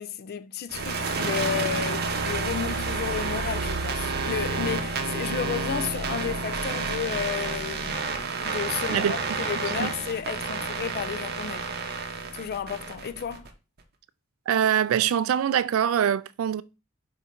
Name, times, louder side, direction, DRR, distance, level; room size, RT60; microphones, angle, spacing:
voice 1, 0.0-11.7 12.3-13.5, left 7 dB, 50° left, 0.4 m, -32 dB
sound 1, 0.7-13.5, right 4 dB, 50° right, 0.7 m, -30 dB
voice 2, 14.5-16.6, right 9 dB, 75° right, 0.3 m, -23 dB
4.7 x 2.7 x 4.2 m
head